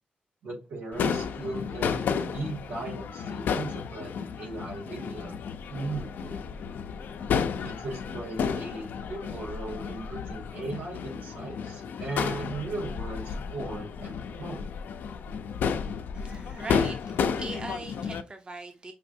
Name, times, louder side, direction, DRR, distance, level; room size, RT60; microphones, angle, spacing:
voice 1, 0.4-5.4 5.7-6.6 7.6-14.7, right 2 dB, 85° right, 2.6 m, -37 dB
Crowd / Fireworks, 0.9-18.2, left 6 dB, 90° left, 0.5 m, -32 dB
voice 2, 16.1-18.9, right 2 dB, 30° right, 0.7 m, -40 dB
5.5 x 3.1 x 2.7 m
cardioid pair, 110°, 3 cm